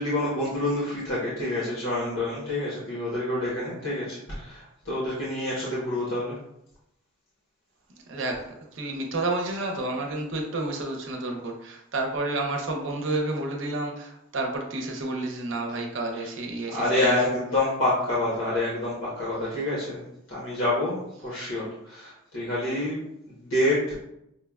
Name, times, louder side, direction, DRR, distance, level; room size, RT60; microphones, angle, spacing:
voice 1, 0.0-6.4 16.7-23.0 23.3-24.0, left 1 dB, 70° left, -8 dB, 1.0 m, -27 dB
voice 2, 8.1-17.2, right 2 dB, 60° right, 2 dB, 0.7 m, -30 dB
5.5 x 2.2 x 2.3 m, 0.81 s
head